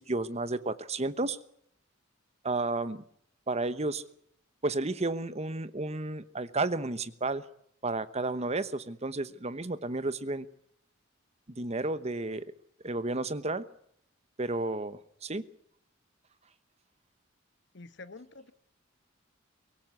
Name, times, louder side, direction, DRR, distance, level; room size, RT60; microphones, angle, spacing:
voice 1, 0.0-1.4 2.4-3.0 3.5-4.0 4.6-7.4 7.8-10.5 11.6-12.5 12.8-13.6 14.4-15.4, right 2 dB, 35° right, 14 dB, 1.1 m, -32 dB
voice 2, 17.7-18.5, left 3 dB, 60° left, 13 dB, 1.2 m, -47 dB
24.0 x 17.0 x 8.2 m, 0.70 s
head